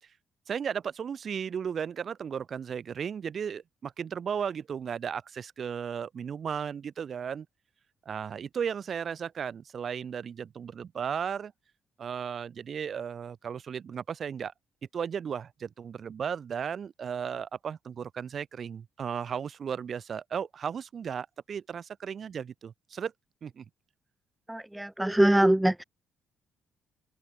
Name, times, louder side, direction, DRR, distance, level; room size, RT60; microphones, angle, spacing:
voice 1, 0.5-7.5 8.0-11.5 12.0-14.5 14.9-23.1 23.4-23.6, right 7 dB, 55° right, 1.1 m, -35 dB
voice 2, 24.5-25.8, right 1 dB, 10° right, 0.4 m, -23 dB
open air
supercardioid pair, 75°, 0 cm